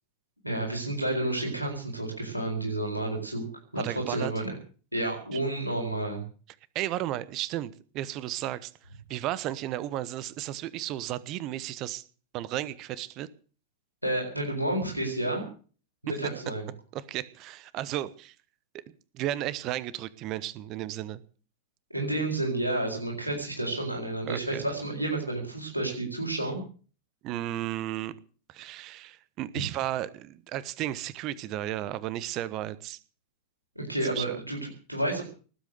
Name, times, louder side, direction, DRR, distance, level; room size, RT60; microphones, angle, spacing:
voice 1, 0.4-3.5 3.7-4.5 4.9-6.2 14.0-15.5 16.0-16.7 21.9-26.6 29.5-29.6 33.8-35.2, right 1 dB, 85° right, -1 dB, 4.3 m, -30 dB
voice 2, 3.8-4.3 5.3-5.4 6.7-8.7 9.1-12.0 12.3-13.3 16.9-18.3 19.1-21.2 24.2-24.6 27.2-28.1 28.5-33.0 34.1-34.4, right 13 dB, 40° right, 19 dB, 1.0 m, -34 dB
19.5 x 8.6 x 7.7 m, 0.41 s
figure-of-eight pair, 90°, 0 cm